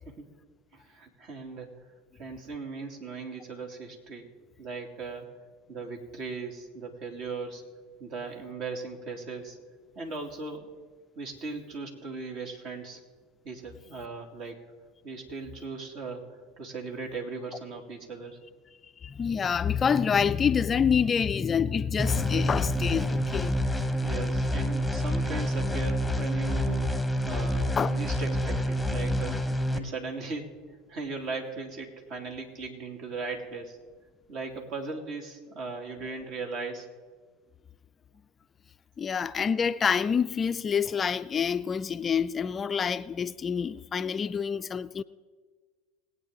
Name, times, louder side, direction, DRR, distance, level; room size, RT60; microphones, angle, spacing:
voice 1, 0.7-1.7 2.2-4.3 4.6-5.3 5.7-7.6 8.0-9.6 9.9-10.7 11.2-13.0 13.4-14.6 15.0-16.2 16.6-18.4 23.9-26.9 27.2-30.5 30.9-33.8 34.3-36.9, right 4 dB, 50° right, 2.7 m, -38 dB
voice 2, 19.0-23.6 27.8-27.9 39.0-45.0, left 7 dB, 30° left, 0.4 m, -27 dB
sound 1, 22.0-29.8, equal, ahead, 1.1 m, -28 dB
21.0 x 8.8 x 3.8 m
hypercardioid pair, 80°, 0 cm